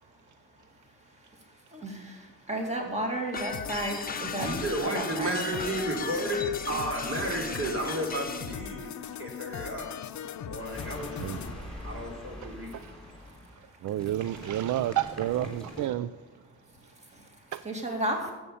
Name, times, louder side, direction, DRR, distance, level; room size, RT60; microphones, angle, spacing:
voice 1, 2.5-4.5 4.8-5.7 17.6-18.2, right 1 dB, 20° right, 2.3 m, -32 dB
sound 1, 3.3-8.6, left 5 dB, 30° left, 0.9 m, -38 dB
sound 2, 3.5-11.5, left 9 dB, 70° left, 0.7 m, -39 dB
voice 2, 4.4-9.9 10.4-12.7, right 1 dB, 45° right, 3.2 m, -33 dB
sound 3, 10.7-15.9, left 1 dB, 5° left, 3.5 m, -43 dB
voice 3, 11.2-11.6 12.4-13.0 13.8-16.2 17.5-17.6, right 13 dB, 70° right, 0.4 m, -31 dB
13.5 x 7.9 x 7.1 m
wide cardioid pair, 145°, 30 cm